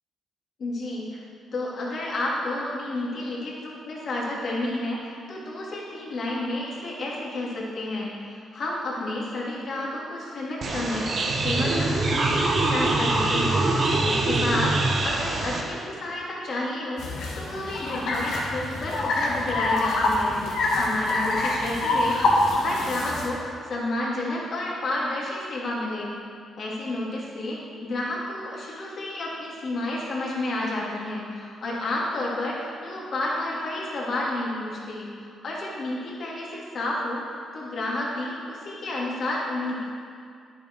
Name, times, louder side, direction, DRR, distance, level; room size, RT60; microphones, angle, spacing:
voice 1, 0.6-1.2 1.5-11.1 11.4-26.1 26.6-35.1 35.4-37.2 37.5-39.8, left 1 dB, 60° left, -5 dB, 3.1 m, -31 dB
sound 1, 10.6-15.6, right 2 dB, 55° right, 1.6 m, -24 dB
sound 2, 17.0-23.3, left 2 dB, 75° left, 1.8 m, -25 dB
10.5 x 8.6 x 4.8 m, 2.2 s
supercardioid pair, 60°, 0 cm